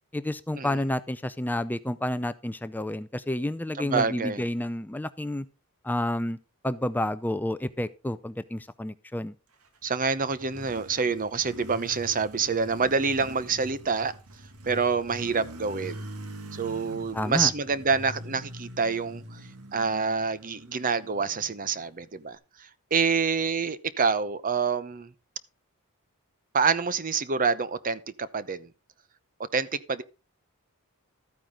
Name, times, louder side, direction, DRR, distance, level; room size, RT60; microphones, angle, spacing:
voice 1, 0.1-5.4 5.8-6.4 6.6-9.3 17.1-17.5, left 1 dB, 10° left, 0.5 m, -30 dB
voice 2, 3.8-4.4 9.8-14.1 14.6-16.1 16.5-19.4 19.7-22.4 22.9-25.1 26.5-28.7 29.5-30.0, right 5 dB, 40° right, 0.8 m, -27 dB
Motorcycle, 9.7-22.3, right 1 dB, 80° right, 1.9 m, -44 dB
13.0 x 9.2 x 3.7 m
head